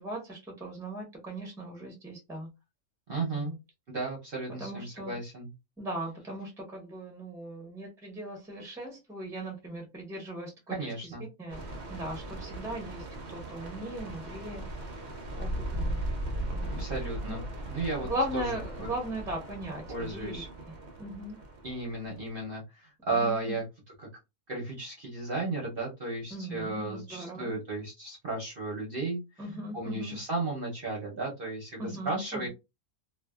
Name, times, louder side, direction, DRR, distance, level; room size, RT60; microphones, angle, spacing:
voice 1, 0.0-2.5 3.3-3.5 4.6-5.1 5.8-10.8 11.0-11.6 11.9-14.6 15.4-16.0 16.5-16.8 17.2-17.5 18.0-20.4 20.7-21.4 23.1-23.6 26.3-27.5 29.4-30.2 31.8-32.5, right 1 dB, 5° right, 0 dB, 0.7 m, -38 dB
voice 2, 3.1-3.5 3.9-5.5 10.7-11.2 16.8-18.9 19.9-20.5 21.6-23.6 24.0-24.1 24.5-29.2 29.7-32.5, right 3 dB, 45° right, -2 dB, 0.8 m, -34 dB
sound 1, 11.5-22.4, right 1 dB, 65° right, 0.4 m, -38 dB
2.5 x 2.5 x 2.3 m, 0.24 s
omnidirectional pair, 1.6 m